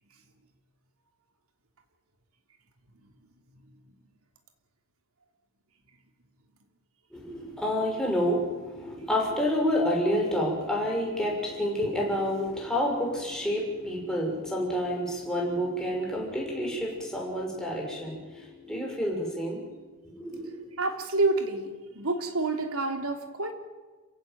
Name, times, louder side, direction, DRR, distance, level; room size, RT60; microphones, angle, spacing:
voice 1, 7.1-19.8 20.0-20.7, equal, 5° left, -2 dB, 6.2 m, -29 dB
voice 2, 20.8-23.5, right 2 dB, 75° right, 5 dB, 2.9 m, -28 dB
27.5 x 15.5 x 9.2 m, 1.3 s
head